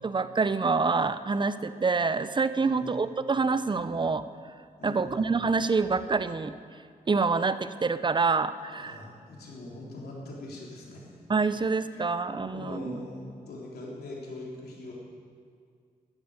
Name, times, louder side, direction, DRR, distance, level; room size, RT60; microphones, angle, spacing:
voice 1, 0.0-4.2 4.8-6.5 7.1-9.0 11.3-13.0, right 4 dB, 30° right, 13 dB, 0.7 m, -26 dB
voice 2, 2.6-3.1 4.8-5.3 8.7-11.0 11.9-12.1 12.4-14.9, left 1 dB, 80° left, -3 dB, 3.5 m, -42 dB
13.5 x 10.5 x 6.7 m, 2.2 s
cardioid pair, 60°, 16 cm